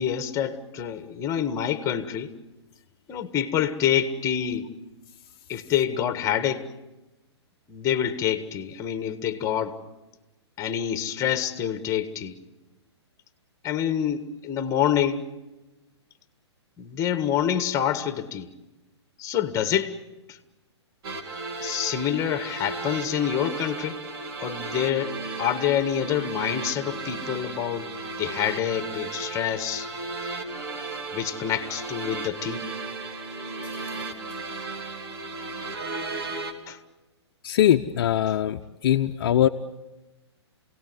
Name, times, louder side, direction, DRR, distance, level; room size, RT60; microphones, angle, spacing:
voice 1, 0.0-2.3 3.1-4.7 5.5-6.7 7.7-9.8 10.6-12.4 13.6-15.3 16.8-18.5 19.2-20.0 20.3-20.4 21.6-24.0 24.4-27.9 28.2-29.9 31.1-32.7 36.7-36.8, left 9 dB, 20° left, 1.8 m, -27 dB
sound 1, 21.0-36.5, right 3 dB, 60° right, 3.2 m, -35 dB
voice 2, 33.7-34.0 37.4-39.5, left 11 dB, 55° left, 0.9 m, -22 dB
28.0 x 18.0 x 9.6 m
hypercardioid pair, 125°, 14 cm